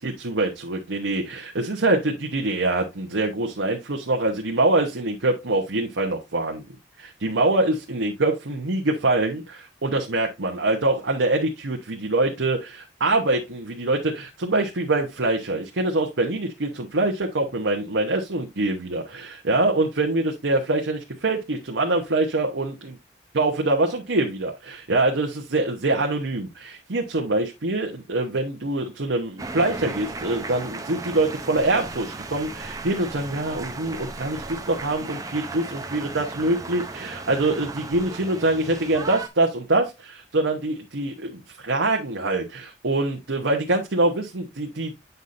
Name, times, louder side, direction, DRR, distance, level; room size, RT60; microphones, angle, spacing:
voice 1, 0.0-6.6 7.0-22.9 23.3-44.9, right 2 dB, 85° right, 1 dB, 1.0 m, -24 dB
sound 1, 29.4-39.3, right 3 dB, 20° right, 0.7 m, -36 dB
8.1 x 5.5 x 2.6 m, 0.22 s
head